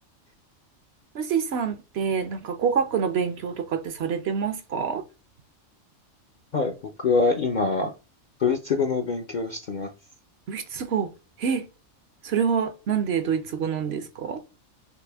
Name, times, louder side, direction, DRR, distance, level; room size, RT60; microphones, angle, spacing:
voice 1, 1.1-5.0 10.5-11.1 11.4-11.6 12.2-14.4, right 7 dB, 60° right, 0.8 m, -26 dB
voice 2, 6.5-7.9 8.4-9.9, left 4 dB, 55° left, 0.5 m, -24 dB
5.9 x 2.0 x 3.4 m
omnidirectional pair, 1.3 m